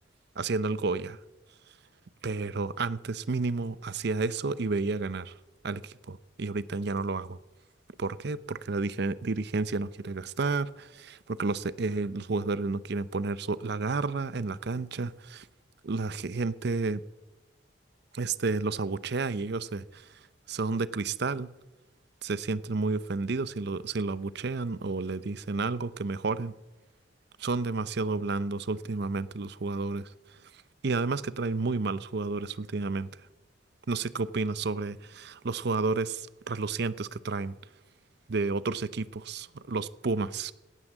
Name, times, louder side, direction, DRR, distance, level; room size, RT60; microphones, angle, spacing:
voice 1, 0.4-1.2 2.2-5.3 5.6-7.4 8.0-15.4 15.8-17.0 18.1-20.1 20.5-21.5 22.2-26.5 27.4-30.1 30.8-33.1 33.9-37.5 38.3-40.5, right 3 dB, 60° right, 0.6 m, -31 dB
17.0 x 9.8 x 7.3 m
head